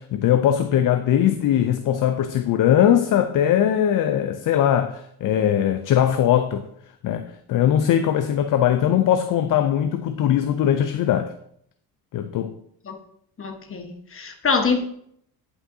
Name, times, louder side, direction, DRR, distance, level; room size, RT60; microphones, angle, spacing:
voice 1, 0.0-6.7 7.0-11.3 12.1-12.5, left 10 dB, 50° left, 0.6 m, -20 dB
voice 2, 13.4-14.8, left 4 dB, 30° left, 1.3 m, -24 dB
10.0 x 5.6 x 2.7 m
cardioid pair, 90°, 40 cm